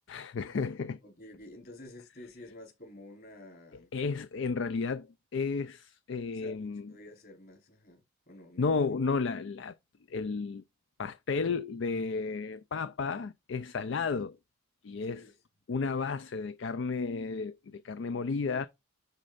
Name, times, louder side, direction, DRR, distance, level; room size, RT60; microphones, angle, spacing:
voice 1, 0.1-1.0 3.9-6.9 8.6-9.7 10.1-10.6 11.0-14.4 14.8-15.3 15.7-18.7, left 4 dB, 60° left, 0.4 m, -33 dB
voice 2, 1.0-3.9 6.3-8.0 8.3-8.9 15.0-15.3, left 1 dB, 45° left, 4.2 m, -50 dB
11.5 x 4.3 x 2.5 m
head